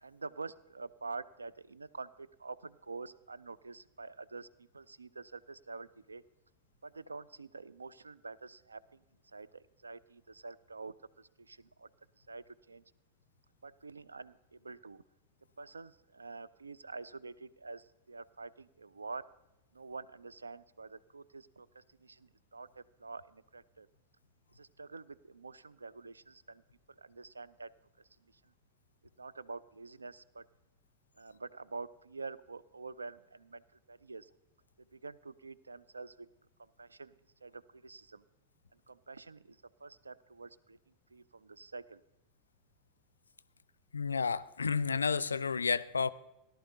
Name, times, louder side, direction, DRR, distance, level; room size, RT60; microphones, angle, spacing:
voice 1, 0.0-6.2 6.8-9.0 9.3-11.9 12.3-12.8 13.6-15.0 15.6-19.3 19.7-23.9 24.5-26.6 27.0-27.7 28.2-28.5 29.2-30.5 31.2-33.6 33.9-34.3 34.8-36.3 36.6-37.1 37.4-38.2 38.7-42.0, right 4 dB, 75° right, 18 dB, 0.3 m, -47 dB
voice 2, 43.9-46.1, left 5 dB, 75° left, 19 dB, 0.3 m, -31 dB
17.5 x 11.0 x 2.8 m, 0.95 s
figure-of-eight pair, 90°, 0 cm